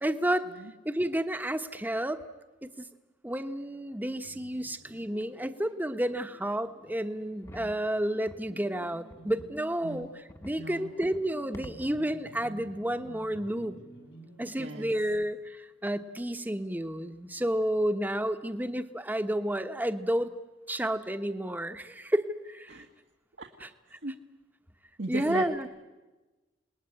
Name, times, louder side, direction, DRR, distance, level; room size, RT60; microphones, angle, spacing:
voice 1, 0.0-0.5 0.8-2.2 2.6-2.9 3.2-10.1 10.4-13.7 14.4-20.3 20.7-22.8 23.6-23.7 25.1-25.7, right 1 dB, 10° right, 9 dB, 1.1 m, -31 dB
sound 1, 4.2-14.7, right 1 dB, 75° left, 4.7 m, -52 dB
sound 2, 7.4-7.8 8.3-8.5 9.1-9.6 10.3-10.6 11.0-11.3 11.5-12.0, equal, 15° left, 1.1 m, -47 dB
voice 2, 10.6-10.9 14.6-14.9 22.7-22.9 23.4-23.5 24.0-24.1 25.0-25.7, right 2 dB, 70° right, 2 dB, 1.8 m, -37 dB
27.5 x 20.0 x 9.9 m, 1.2 s
head